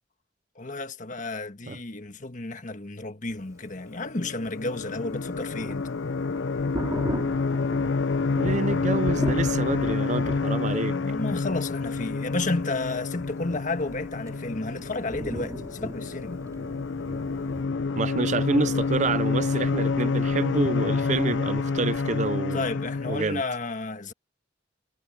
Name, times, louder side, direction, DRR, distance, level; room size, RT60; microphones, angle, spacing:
voice 1, 0.6-5.9 10.9-16.4 22.5-24.1, left 2 dB, 40° left, 1.5 m, -32 dB
sound 1, 3.8-23.2, left 4 dB, 75° left, 0.6 m, -28 dB
Thunder, 4.8-17.7, equal, 20° right, 4.9 m, -38 dB
voice 2, 8.3-11.0 17.9-22.7 23.1-23.4, right 3 dB, 40° right, 0.6 m, -28 dB
head